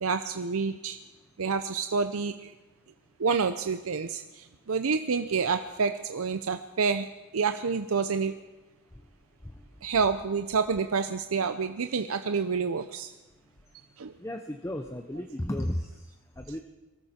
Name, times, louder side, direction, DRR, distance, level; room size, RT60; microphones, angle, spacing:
voice 1, 0.0-1.0 1.4-2.5 3.2-7.1 7.3-8.3 9.8-13.1 14.0-14.1, right 5 dB, 90° right, 8 dB, 0.7 m, -28 dB
voice 2, 14.2-15.9 16.4-16.6, left 1 dB, 15° left, 5 dB, 0.7 m, -33 dB
23.5 x 14.0 x 4.4 m, 1.1 s
head